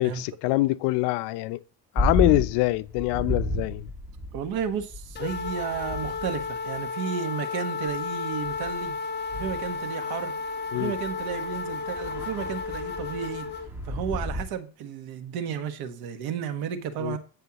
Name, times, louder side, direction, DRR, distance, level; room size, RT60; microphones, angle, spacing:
voice 1, 0.0-1.6 1.9-3.9 10.7-10.9 17.0-17.2, left 19 dB, 80° left, 0.6 m, -24 dB
sound 1, 2.0-6.9 7.9-8.0 8.5-14.4, left 1 dB, 5° right, 1.8 m, -33 dB
voice 2, 4.3-9.0 9.3-10.3 10.7-13.5 13.8-17.2, right 8 dB, 65° right, 1.4 m, -33 dB
sound 2, 5.2-13.7, left 5 dB, 25° left, 1.1 m, -33 dB
16.0 x 5.6 x 2.9 m
cardioid pair, 150°, 40 cm